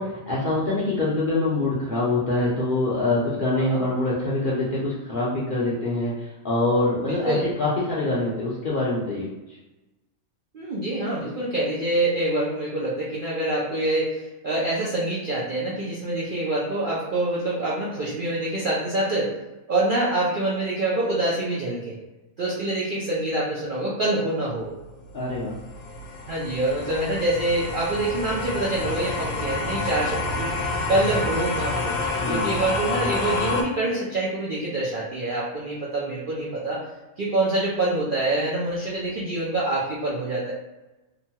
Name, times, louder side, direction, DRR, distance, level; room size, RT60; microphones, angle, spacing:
voice 1, 0.0-9.6 25.1-25.6 32.2-32.6, left 2 dB, 60° left, -7 dB, 0.5 m, -25 dB
voice 2, 7.1-7.5 10.5-19.3 19.7-22.0 22.4-24.7 26.3-32.0 32.2-36.8 37.2-40.5, right 2 dB, 65° right, -6 dB, 0.5 m, -26 dB
sound 1, 24.8-33.6, left 3 dB, 75° left, 0.9 m, -29 dB
2.9 x 2.2 x 2.7 m, 1.1 s
omnidirectional pair, 1.5 m